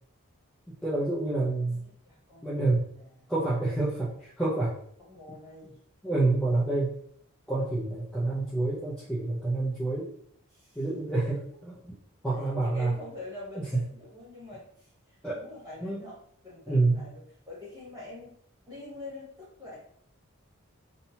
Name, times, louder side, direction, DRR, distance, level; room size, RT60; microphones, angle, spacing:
voice 1, 0.8-1.8 2.4-2.9 3.3-4.7 6.0-6.9 7.5-10.1 10.8-11.8 12.2-12.9 13.5-13.8 15.2-15.4 15.8-16.0 16.7-17.0, right 2 dB, 5° left, -8 dB, 0.3 m, -28 dB
voice 2, 1.8-2.5 2.9-3.3 5.0-5.8 10.5-10.8 12.3-18.3 18.7-19.8, left 2 dB, 15° right, -7 dB, 1.2 m, -45 dB
2.7 x 2.1 x 2.7 m, 0.65 s
head